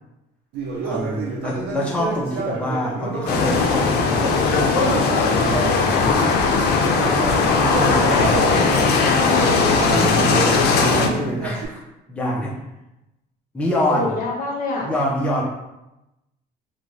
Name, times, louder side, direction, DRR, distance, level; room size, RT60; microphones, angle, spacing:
Conversation, 0.5-6.3 6.7-11.6, right 4 dB, 85° right, 0.5 m, -29 dB
voice 1, 0.8-6.2 6.6-8.5 9.9-12.5 13.5-14.1 14.8-15.4, left 1 dB, 5° left, -4 dB, 0.5 m, -26 dB
sound 1, 3.3-11.1, left 4 dB, 80° left, 0.4 m, -18 dB
voice 2, 13.9-14.9, left 2 dB, 55° left, -1 dB, 0.9 m, -27 dB
2.5 x 2.2 x 3.1 m, 0.93 s
cardioid pair, 110°, 17 cm